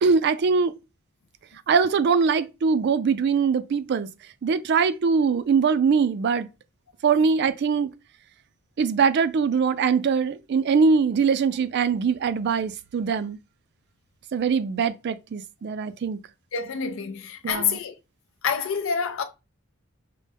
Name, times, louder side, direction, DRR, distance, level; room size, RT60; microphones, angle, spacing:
voice 1, 0.0-0.7 1.7-4.1 4.4-6.5 7.0-7.9 8.8-13.4 14.3-16.2 17.4-17.8, right 5 dB, 55° right, 0.3 m, -22 dB
voice 2, 16.5-17.9 18.4-19.2, left 6 dB, 70° left, 0.4 m, -27 dB
5.3 x 2.1 x 3.3 m
head